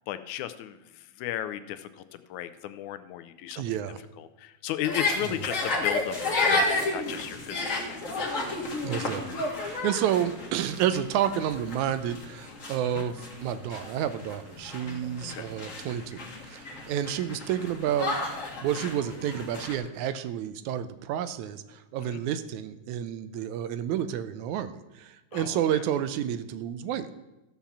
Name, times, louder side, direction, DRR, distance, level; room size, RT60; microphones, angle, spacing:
voice 1, 0.1-3.6 4.2-8.0 12.9-13.0 15.3-15.5 22.0-22.2 25.3-25.8, left 12 dB, 80° left, 12 dB, 2.0 m, -35 dB
voice 2, 3.6-4.0 5.3-5.4 8.8-18.2 18.6-27.1, right 10 dB, 85° right, 12 dB, 2.0 m, -30 dB
Burkina children playing football, 4.8-19.7, left 2 dB, 30° left, 1.6 m, -32 dB
14.0 x 5.8 x 7.2 m, 1.0 s
omnidirectional pair, 3.5 m